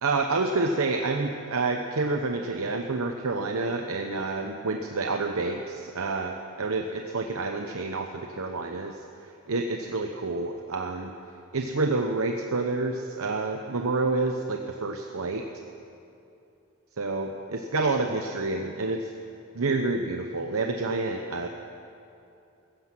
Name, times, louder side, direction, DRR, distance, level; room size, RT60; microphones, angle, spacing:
voice 1, 0.0-9.0 9.5-11.1 11.5-15.4 17.0-19.1 19.5-21.5, right 3 dB, 85° right, 4 dB, 0.9 m, -28 dB
16.0 x 15.0 x 6.0 m, 2.7 s
head